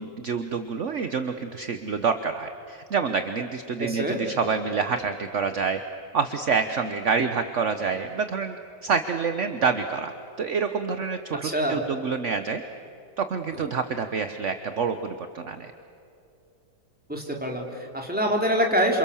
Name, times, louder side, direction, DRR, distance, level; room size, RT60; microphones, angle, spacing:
voice 1, 0.0-5.8 6.1-8.6 8.8-12.6 13.2-15.7 17.2-17.3, right 5 dB, 45° right, 8 dB, 1.0 m, -27 dB
voice 2, 3.8-4.2 11.4-11.8 17.1-19.0, equal, 5° right, 0 dB, 3.5 m, -25 dB
28.5 x 27.5 x 7.1 m, 2.6 s
omnidirectional pair, 2.3 m